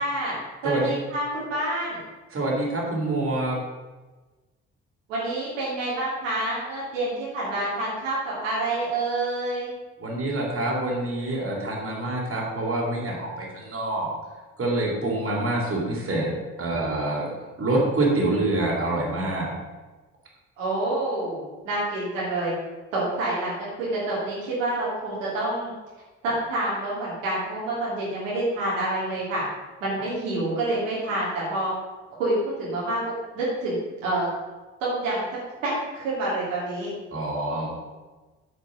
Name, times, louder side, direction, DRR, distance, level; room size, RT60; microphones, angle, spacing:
voice 1, 0.0-2.0 5.1-9.7 20.6-22.5 22.9-25.7 26.2-29.4 29.8-31.7 32.2-34.3 34.8-35.2 35.6-36.9, right 2 dB, 75° right, -7 dB, 2.9 m, -27 dB
voice 2, 2.3-3.6 10.0-14.1 14.6-17.3 17.6-19.5 37.1-37.7, right 2 dB, 35° right, -3 dB, 3.5 m, -26 dB
9.0 x 5.8 x 6.4 m, 1.2 s
figure-of-eight pair, 45°, 38 cm